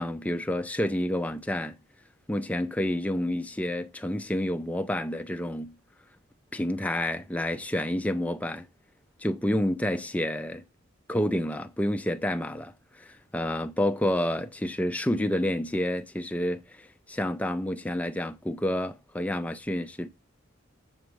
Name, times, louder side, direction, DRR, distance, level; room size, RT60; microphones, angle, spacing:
voice 1, 0.0-1.8 2.3-5.7 6.5-8.7 9.2-10.6 11.1-12.7 13.0-20.1, left 1 dB, 5° left, 0.5 m, -29 dB
8.0 x 3.1 x 6.2 m
head